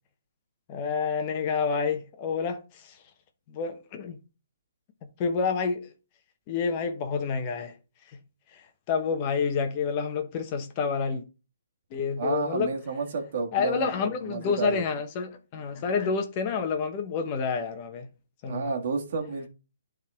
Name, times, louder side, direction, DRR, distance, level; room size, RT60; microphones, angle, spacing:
voice 1, 0.7-3.0 3.5-4.2 5.2-5.9 6.5-7.7 8.1-8.2 8.5-8.6 8.9-11.2 11.9-12.7 13.5-18.1 18.4-18.6, left 5 dB, 30° left, 1.1 m, -28 dB
voice 2, 12.2-14.8 18.4-19.5, right 4 dB, 50° right, 1.8 m, -31 dB
11.0 x 3.8 x 3.5 m
hypercardioid pair, 155°, 0 cm